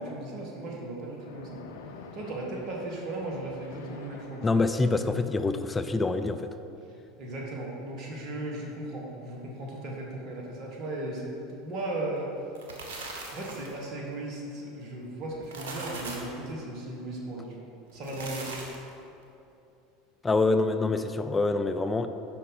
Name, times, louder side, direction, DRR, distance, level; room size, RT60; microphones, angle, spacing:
voice 1, 0.0-1.6 2.1-4.6 7.2-12.3 13.3-18.7, right 1 dB, 50° right, -2 dB, 1.3 m, -36 dB
Splash splatter, 1.1-5.2, left 5 dB, 75° left, 0.5 m, -47 dB
voice 2, 4.4-6.5 20.2-22.1, left 3 dB, 20° left, 9 dB, 0.4 m, -26 dB
sound 1, 12.4-13.8 15.3-16.4 17.9-18.9, right 3 dB, 75° right, 1.0 m, -40 dB
5.5 x 5.0 x 5.4 m, 2.7 s
hypercardioid pair, 80°, 0 cm